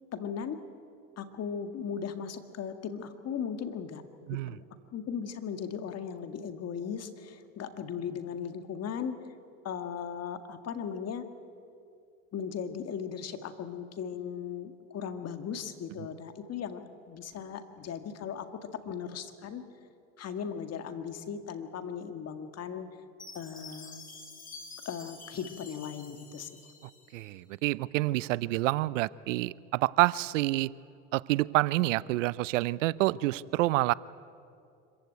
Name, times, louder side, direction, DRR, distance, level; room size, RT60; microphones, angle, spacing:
voice 1, 0.1-0.6 1.2-4.6 4.9-9.2 9.6-11.3 12.3-19.6 20.2-22.9 23.3-24.0 24.9-26.5, left 7 dB, 40° left, 8 dB, 1.9 m, -37 dB
Chime, 23.2-27.3, left 4 dB, 20° left, 3.5 m, -48 dB
voice 2, 27.1-30.7 31.1-33.9, right 18 dB, 85° right, 21 dB, 0.6 m, -28 dB
25.5 x 15.5 x 9.3 m, 2.5 s
supercardioid pair, 95°, 37 cm